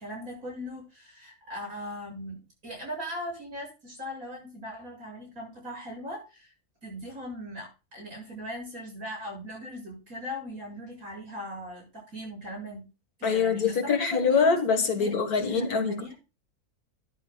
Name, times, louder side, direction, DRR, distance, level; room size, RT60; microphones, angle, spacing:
voice 1, 0.0-6.5 6.8-12.9 13.2-14.6 15.0-15.2 15.5-16.1, equal, 65° right, 7.9 m, -39 dB
voice 2, 13.2-16.1, left 5 dB, 75° left, 2.1 m, -24 dB
13.0 x 11.0 x 2.4 m
omnidirectional pair, 1.6 m